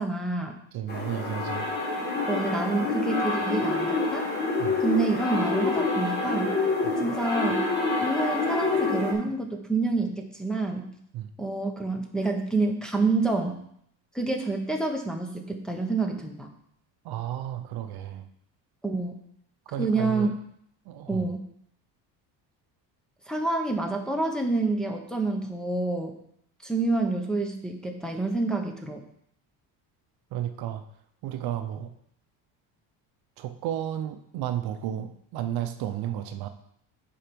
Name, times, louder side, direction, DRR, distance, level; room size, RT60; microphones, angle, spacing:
voice 1, 0.0-0.5 2.3-4.3 4.8-6.5 7.0-7.6 8.0-10.9 11.4-13.6 14.1-16.5 18.8-19.2 19.8-20.3 21.1-21.4 23.3-26.1 26.6-29.0, right 3 dB, ahead, 1 dB, 0.8 m, -28 dB
voice 2, 0.7-1.7 4.6-4.7 11.1-11.3 17.0-18.2 19.7-20.3 20.9-21.3 30.3-30.8 31.2-31.9 33.4-36.5, right 11 dB, 60° right, 8 dB, 0.7 m, -32 dB
sound 1, 0.9-9.1, left 3 dB, 25° left, 1.5 m, -27 dB
7.4 x 4.7 x 5.3 m, 0.70 s
cardioid pair, 135°, 42 cm